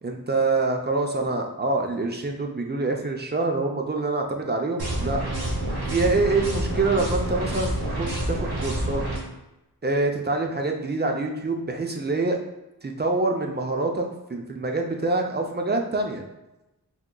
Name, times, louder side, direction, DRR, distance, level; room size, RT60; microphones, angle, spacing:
voice 1, 0.0-5.2 5.9-9.0 9.8-12.4 12.8-16.2, right 3 dB, 30° right, 2 dB, 0.4 m, -26 dB
sound 1, 4.8-9.2, right 1 dB, 80° right, 0.9 m, -28 dB
3.7 x 2.8 x 2.2 m, 0.97 s
wide cardioid pair, 55°, 38 cm